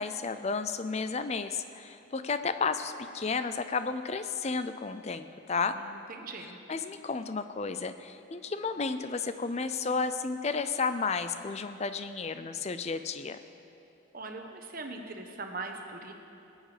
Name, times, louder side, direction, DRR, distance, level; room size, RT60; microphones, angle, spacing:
voice 1, 0.0-5.7 6.7-13.4, left 4 dB, 30° left, 10 dB, 0.5 m, -32 dB
voice 2, 5.7-6.6 14.1-16.1, right 3 dB, 45° right, 4 dB, 1.1 m, -41 dB
18.5 x 8.9 x 5.1 m, 2.9 s
head